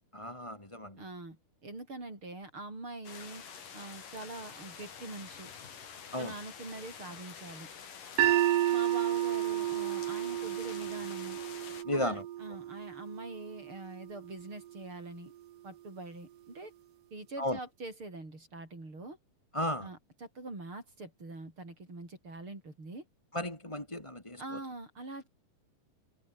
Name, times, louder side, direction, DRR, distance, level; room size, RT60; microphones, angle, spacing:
voice 1, 0.1-1.0 6.1-6.3 11.8-12.2 17.4-17.6 19.5-19.9 23.3-24.6, left 1 dB, 10° left, 2.9 m, -34 dB
voice 2, 1.0-3.4 3.7-5.5 6.2-7.7 8.7-11.4 11.9-15.3 15.6-16.7 17.1-19.2 19.8-23.1 24.4-25.3, right 2 dB, 40° right, 8.2 m, -44 dB
sound 1, 3.0-11.8, left 7 dB, 85° left, 5.0 m, -48 dB
sound 2, 8.2-14.3, right 13 dB, 65° right, 1.6 m, -31 dB
omnidirectional pair, 3.7 m